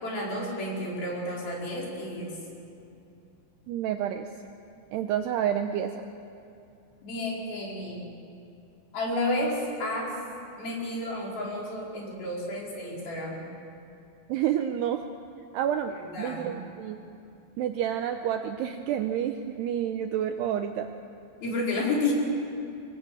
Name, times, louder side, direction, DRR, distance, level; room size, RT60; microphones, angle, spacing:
voice 1, 0.0-2.3 7.0-8.1 8.9-10.2 10.6-13.4 15.9-16.5 21.4-22.1, left 1 dB, 50° left, -3 dB, 6.6 m, -31 dB
voice 2, 3.7-4.3 4.9-6.1 14.3-15.0 15.5-17.0 17.6-20.9, right 10 dB, 85° right, 6 dB, 2.4 m, -29 dB
25.0 x 21.5 x 8.6 m, 2.7 s
omnidirectional pair, 5.7 m